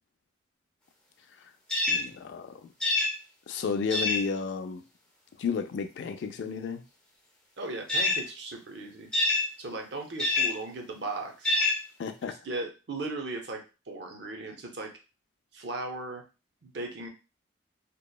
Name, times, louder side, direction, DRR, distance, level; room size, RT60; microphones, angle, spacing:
sound 1, 1.7-2.1 2.8-3.1 3.9-4.2 7.9-8.2 9.1-9.5 10.2-10.5 11.4-11.8, left 2 dB, 5° left, 0.5 m, -25 dB
voice 1, 1.9-2.7 3.5-4.8 5.4-6.8 12.0-12.4, left 5 dB, 65° left, 8 dB, 0.3 m, -32 dB
voice 2, 7.6-9.1 9.6-11.5 12.4-14.9 15.5-16.2 16.6-17.1, right 2 dB, 60° right, 3 dB, 0.6 m, -37 dB
2.8 x 2.0 x 2.2 m, 0.31 s
head